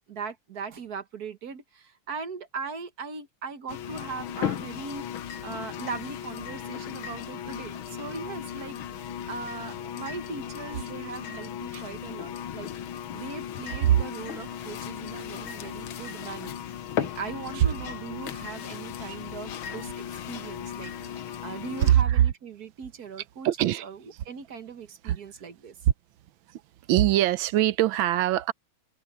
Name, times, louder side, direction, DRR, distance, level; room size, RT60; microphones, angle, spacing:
voice 1, 0.1-5.1 5.4-16.6 17.0-24.0 24.2-25.8, right 5 dB, 50° right, 1.6 m, -39 dB
sound 1, 3.7-21.9, left 9 dB, 75° left, 1.7 m, -36 dB
voice 2, 21.8-22.2 23.4-23.9 25.0-25.2 26.5-26.6 26.9-28.5, right 12 dB, 70° right, 1.4 m, -22 dB
omnidirectional pair, 2.3 m